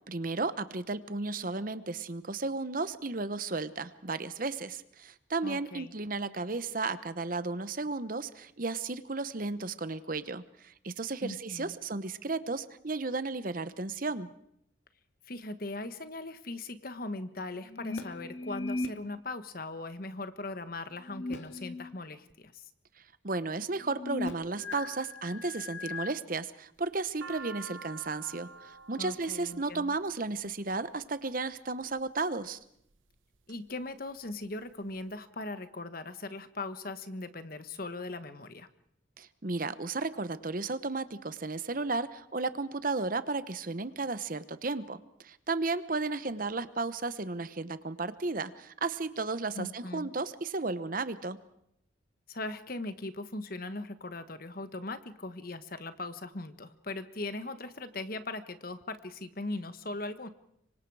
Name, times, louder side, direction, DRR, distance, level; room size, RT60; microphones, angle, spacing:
voice 1, 0.1-14.3 23.2-32.6 39.2-51.4, right 3 dB, 45° right, 13 dB, 0.9 m, -34 dB
voice 2, 5.4-5.9 11.2-11.8 15.3-22.6 29.0-29.9 33.5-38.7 49.5-50.1 52.3-60.3, left 2 dB, 50° left, 11 dB, 1.3 m, -39 dB
sound 1, 17.6-18.9 21.0-21.9 22.3-22.4 23.8-26.1, left 2 dB, 75° left, 2.0 m, -38 dB
sound 2, 26.8-31.0 31.8-32.3 32.9-33.6 33.9-34.0 34.2-35.0, right 5 dB, 85° right, 1.0 m, -48 dB
26.0 x 24.5 x 4.8 m, 0.72 s
head